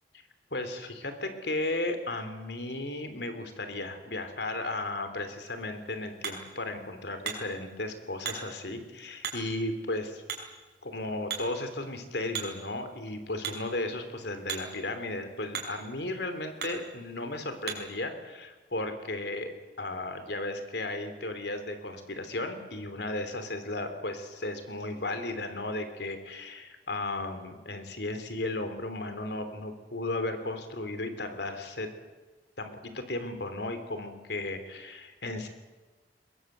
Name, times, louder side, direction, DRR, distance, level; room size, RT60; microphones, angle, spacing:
voice 1, 0.5-10.2 10.8-31.9 32.6-35.5, left 2 dB, 70° left, 8 dB, 3.3 m, -35 dB
Hammer, 5.4-18.0, right 6 dB, 60° right, 5.2 m, -42 dB
22.0 x 21.5 x 8.1 m, 1.3 s
head